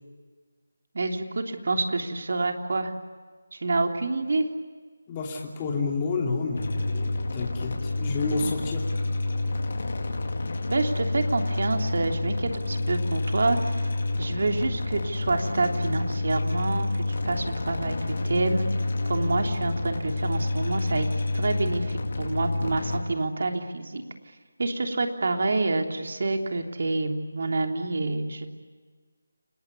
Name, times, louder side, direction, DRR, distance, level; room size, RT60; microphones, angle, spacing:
voice 1, 0.9-2.9 3.5-4.5 10.7-13.9 14.2-18.0 18.2-18.7 19.1-21.1 21.3-24.0 24.6-28.5, right 2 dB, 60° right, 4 dB, 3.3 m, -27 dB
voice 2, 5.1-8.9, left 4 dB, 20° left, -1 dB, 3.1 m, -30 dB
sound 1, 6.6-23.0, left 2 dB, 60° left, 4.7 m, -28 dB
28.5 x 20.0 x 9.6 m, 1.5 s
figure-of-eight pair, 165°, 0 cm